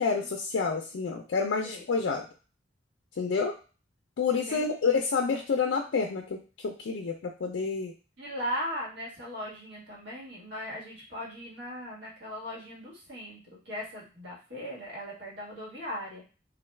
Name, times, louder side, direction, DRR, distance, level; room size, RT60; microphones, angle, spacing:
voice 1, 0.0-2.2 3.2-3.5 4.2-7.1 7.4-7.9, left 5 dB, 75° left, 2 dB, 0.4 m, -28 dB
voice 2, 4.3-4.7 8.2-16.2, equal, 85° right, -6 dB, 1.4 m, -38 dB
2.5 x 2.3 x 3.1 m, 0.35 s
head